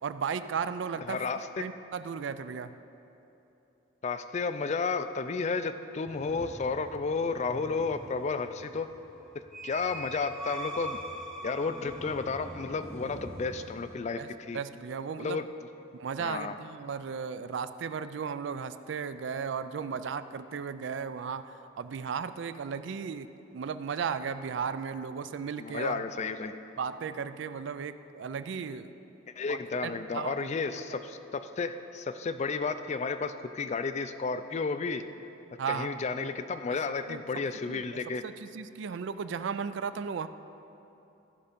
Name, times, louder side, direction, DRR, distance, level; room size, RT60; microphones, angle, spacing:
voice 1, 0.0-1.2 1.6-2.8 14.2-14.3 14.5-15.4 16.0-23.3 23.5-26.0 26.8-28.9 29.5-30.5 35.6-36.0 37.1-37.2 37.7-37.8 38.2-40.3, right 6 dB, 65° right, 13 dB, 0.4 m, -35 dB
voice 2, 1.1-1.7 4.0-8.9 9.6-11.0 11.4-14.6 15.2-15.4 16.2-16.6 25.6-26.6 29.4-35.0 35.7-38.2, left 4 dB, 35° left, 10 dB, 0.3 m, -32 dB
sound 1, 6.0-14.0, right 1 dB, 5° left, 0.7 m, -43 dB
14.0 x 5.4 x 5.1 m, 2.9 s
head